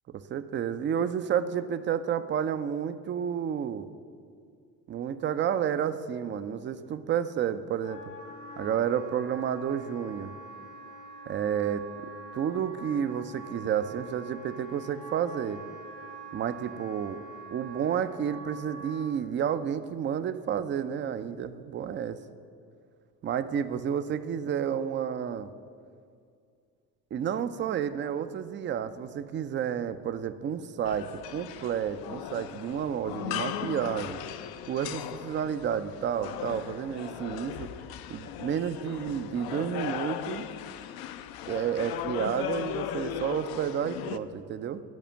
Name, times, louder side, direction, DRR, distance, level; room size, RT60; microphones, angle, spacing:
voice 1, 0.1-3.9 4.9-8.0 8.6-10.3 11.3-11.8 12.3-15.6 16.3-17.2 17.5-22.2 23.2-25.5 27.1-34.2 34.7-37.7 38.1-40.5 41.5-44.8, right 8 dB, 25° right, 12 dB, 0.4 m, -31 dB
Wind instrument woodwind instrument, 7.8-19.1, right 2 dB, 90° left, 1.8 m, -45 dB
sound 1, 30.9-44.2, left 11 dB, 50° left, 0.6 m, -37 dB
9.3 x 5.0 x 7.4 m, 2.3 s
hypercardioid pair, 60°, 48 cm